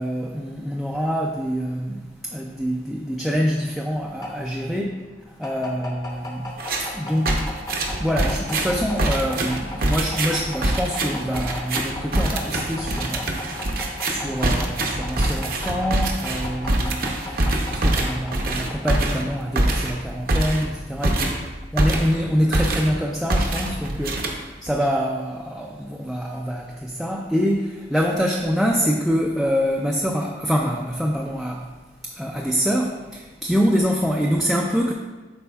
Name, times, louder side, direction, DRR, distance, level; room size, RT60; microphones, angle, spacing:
voice 1, 0.0-4.9 5.4-6.5 6.8-7.4 8.0-31.6 32.0-34.9, equal, ahead, -2 dB, 0.4 m, -25 dB
sound 1, 3.5-19.5, left 1 dB, 20° left, 0.8 m, -37 dB
sound 2, 6.6-6.9 7.3-22.2 22.5-23.0 23.3-24.7, right 1 dB, 55° right, 0.8 m, -24 dB
11.0 x 4.3 x 2.3 m, 1.2 s
head